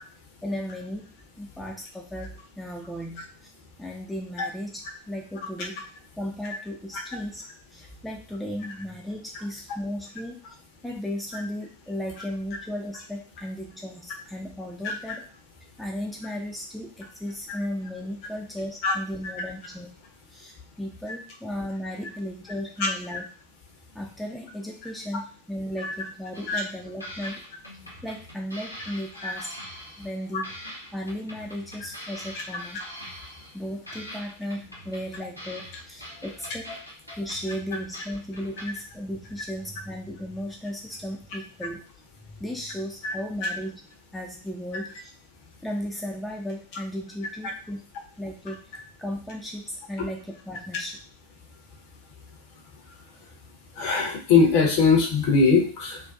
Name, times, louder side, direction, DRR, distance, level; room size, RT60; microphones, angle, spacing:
voice 1, 0.4-3.5 3.8-4.8 5.1-5.8 6.2-7.4 7.7-10.5 10.8-15.2 15.8-19.9 20.3-23.3 23.9-27.4 28.0-29.5 30.0-32.8 33.5-36.7 37.1-41.8 42.3-43.9 44.1-45.1 45.6-47.8 48.2-48.7 49.0-51.0, equal, 5° left, -1 dB, 0.4 m, -35 dB
voice 2, 14.8-15.2 17.5-17.6 18.8-18.9 22.8-23.2 25.8-25.9 26.5-26.6 29.2-29.3 36.7-36.8 37.1-37.2 43.0-43.1 43.4-43.5 53.8-56.0, left 4 dB, 45° left, 1 dB, 0.6 m, -22 dB
sound 1, 26.3-26.7 27.0-30.2 30.4-33.6 33.9-38.6, equal, 90° left, 0.7 m, -43 dB
2.6 x 2.2 x 2.3 m, 0.40 s
figure-of-eight pair, 90°, 0 cm